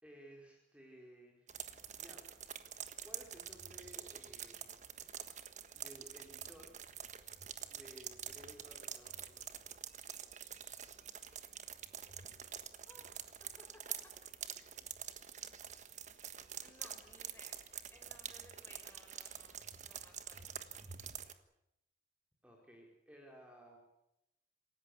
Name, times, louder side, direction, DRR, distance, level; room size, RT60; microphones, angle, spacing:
voice 1, 0.0-2.2 3.0-4.8 5.7-6.7 7.7-9.8 22.4-23.8, right 1 dB, 5° right, 0 dB, 4.3 m, -57 dB
sound 1, 1.5-21.3, right 9 dB, 40° right, 1.5 m, -47 dB
voice 2, 12.9-13.7 14.5-14.9 16.6-17.6 17.9-20.5, left 1 dB, 10° left, 3 dB, 5.4 m, -62 dB
27.5 x 17.0 x 8.3 m, 0.83 s
head